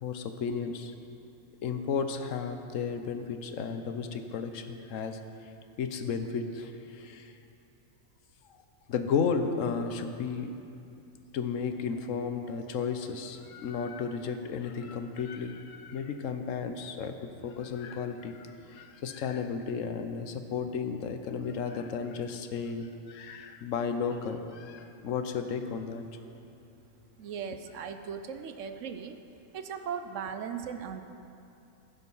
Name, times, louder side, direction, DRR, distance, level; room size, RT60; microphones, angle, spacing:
voice 1, 0.0-0.9 1.6-5.2 5.8-7.3 8.9-10.5 11.3-17.2 17.4-26.0, left 6 dB, 75° left, 7 dB, 1.1 m, -33 dB
voice 2, 27.2-29.2 29.5-31.0, right 7 dB, 70° right, 8 dB, 1.0 m, -38 dB
15.0 x 7.2 x 5.5 m, 2.7 s
omnidirectional pair, 1.4 m